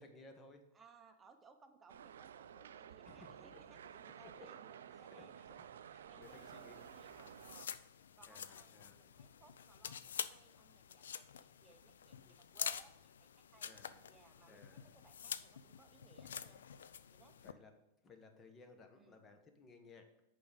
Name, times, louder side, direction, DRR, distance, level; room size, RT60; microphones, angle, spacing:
voice 1, 0.0-0.6 3.0-3.8 4.0-4.5 4.9-5.4 5.9-6.8 8.3-9.0 13.6-14.0 14.5-14.9 17.3-17.7 18.0-20.0, left 3 dB, 25° left, 5 dB, 1.2 m, -60 dB
voice 2, 0.7-5.7 6.1-7.7 8.2-13.7 14.1-16.6 17.1-17.4 18.9-19.2, right 5 dB, 15° right, 5 dB, 0.9 m, -65 dB
sound 1, 1.9-7.7, right 9 dB, 85° right, 0.3 m, -54 dB
sound 2, 6.2-17.5, left 8 dB, 90° left, 0.4 m, -48 dB
7.0 x 5.1 x 5.1 m, 0.92 s
hypercardioid pair, 125°, 0 cm